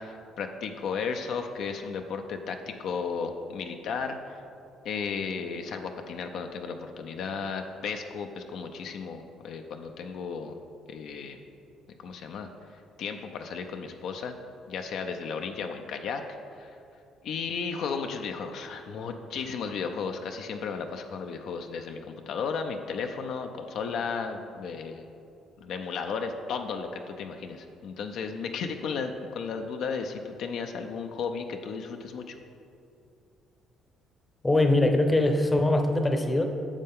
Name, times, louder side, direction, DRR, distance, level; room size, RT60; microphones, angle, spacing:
voice 1, 0.0-4.4 4.8-10.6 10.9-11.4 12.0-12.5 13.0-14.4 14.7-16.2 16.6-16.7 17.2-25.1 25.6-32.4, left 5 dB, 70° left, 5 dB, 0.5 m, -34 dB
voice 2, 34.4-36.4, left 1 dB, 15° left, 5 dB, 0.7 m, -22 dB
9.8 x 6.6 x 3.6 m, 2.6 s
cardioid pair, 100°, 0 cm